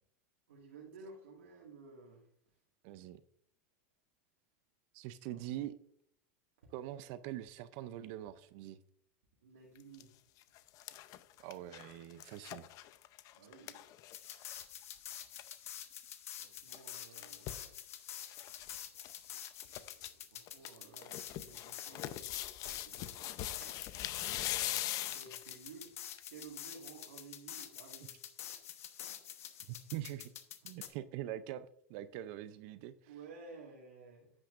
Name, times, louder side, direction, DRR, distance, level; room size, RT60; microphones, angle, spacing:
voice 1, 0.5-2.3 5.3-5.4 9.4-10.1 13.3-14.2 16.4-17.6 18.3-18.5 19.6-23.8 25.0-25.9 26.3-28.2 30.6-30.7 33.1-34.3, right 4 dB, 90° right, 2.0 m, -55 dB
voice 2, 2.8-3.2 4.9-5.8 6.7-8.8 11.4-12.7 29.7-30.3 30.6-32.9, right 13 dB, 60° right, 0.6 m, -43 dB
sound 1, 9.8-10.0 10.4-14.6 15.0-15.1 15.2-15.5 16.7-17.7 18.3-18.8 19.0-19.1 19.5-20.1 20.5-25.7 26.2-26.3, left 14 dB, 50° left, 0.7 m, -41 dB
sound 2, 14.1-30.9, left 10 dB, 85° left, 1.1 m, -48 dB
10.0 x 8.8 x 2.5 m
hypercardioid pair, 110°, 8 cm